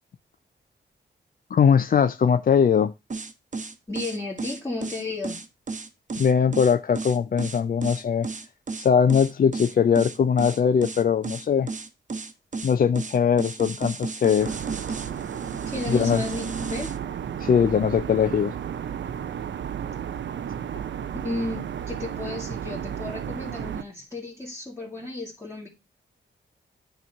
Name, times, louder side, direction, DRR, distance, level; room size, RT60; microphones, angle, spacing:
voice 1, 1.5-2.9 6.2-8.3 8.8-11.7 12.6-14.5 15.9-16.2 17.4-18.5, left 7 dB, 50° left, 0.4 m, -21 dB
sound 1, 3.1-17.0, right 4 dB, 40° right, 1.0 m, -34 dB
voice 2, 3.9-5.4 15.7-16.9 21.2-25.7, left 2 dB, 15° left, 1.7 m, -33 dB
sound 2, 14.4-23.8, right 9 dB, 70° right, 0.5 m, -33 dB
8.8 x 3.0 x 5.3 m
wide cardioid pair, 85°, 19 cm